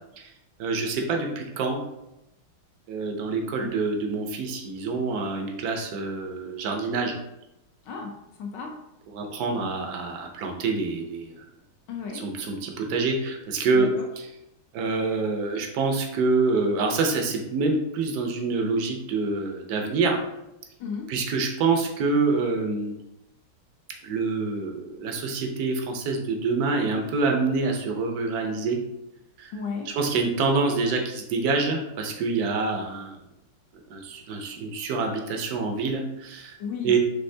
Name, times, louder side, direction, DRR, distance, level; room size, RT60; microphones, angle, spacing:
voice 1, 0.6-1.8 2.9-7.2 9.1-11.4 12.1-13.9 14.7-20.2 21.1-23.0 24.0-28.8 29.4-29.5 29.9-33.2 33.9-36.6 36.8-37.0, right 4 dB, 70° right, 3 dB, 0.9 m, -26 dB
voice 2, 7.8-8.8 11.9-12.3 13.7-14.1 20.8-21.2 29.5-30.0 36.6-37.0, left 5 dB, 70° left, 2 dB, 1.1 m, -34 dB
5.5 x 3.4 x 2.7 m, 0.89 s
omnidirectional pair, 2.3 m